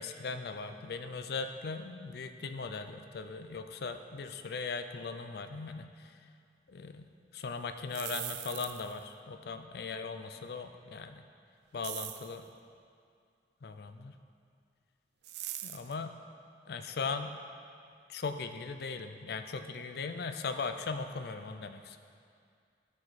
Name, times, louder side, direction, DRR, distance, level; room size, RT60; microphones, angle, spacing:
voice 1, 0.0-6.1 6.7-11.2 11.7-12.4 13.6-14.2 15.6-16.1 16.7-17.3 18.1-22.0, left 4 dB, 60° left, 8 dB, 0.4 m, -39 dB
sound 1, 7.8-9.0 11.8-12.4 15.2-15.9, right 13 dB, 65° right, 0.4 m, -41 dB
13.0 x 4.9 x 4.1 m, 2.3 s
head